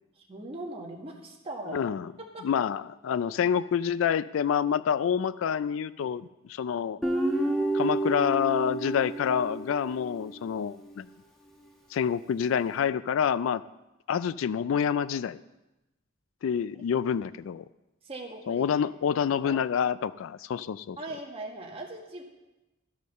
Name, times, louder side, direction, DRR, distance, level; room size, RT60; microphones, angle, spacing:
voice 1, 0.3-1.8 2.3-2.4 18.0-18.6 19.1-19.6 21.0-22.2, right 2 dB, 30° right, 0 dB, 1.5 m, -40 dB
voice 2, 1.7-2.1 2.4-7.0 7.7-11.1 11.9-13.6 14.1-15.4 16.4-17.6 18.5-21.0, left 8 dB, 75° left, 17 dB, 0.3 m, -27 dB
Guitar, 7.0-10.3, right 1 dB, ahead, 1.3 m, -29 dB
13.0 x 5.4 x 6.6 m, 1.0 s
head